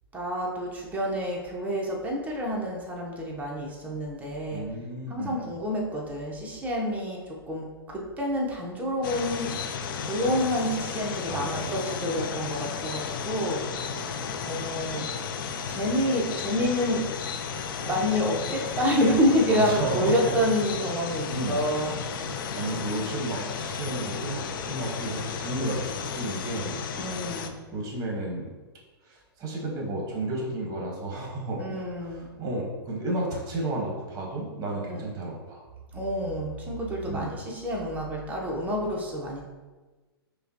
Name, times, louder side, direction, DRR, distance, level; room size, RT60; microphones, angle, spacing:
voice 1, 0.1-4.6 5.1-9.5 10.0-13.6 14.4-15.0 15.7-17.1 17.8-22.0 27.0-27.6 31.6-32.3 34.8-35.1 35.9-39.4, equal, 10° right, -2 dB, 0.8 m, -28 dB
voice 2, 4.5-5.4 11.3-11.8 19.5-20.1 21.3-21.6 22.6-26.8 27.7-28.5 29.1-31.6 32.0-35.6 37.1-37.3, right 2 dB, 30° right, -2 dB, 1.1 m, -32 dB
sound 1, 9.0-27.5, left 6 dB, 60° left, 0.4 m, -34 dB
5.1 x 2.2 x 2.8 m, 1.3 s
hypercardioid pair, 120°, 13 cm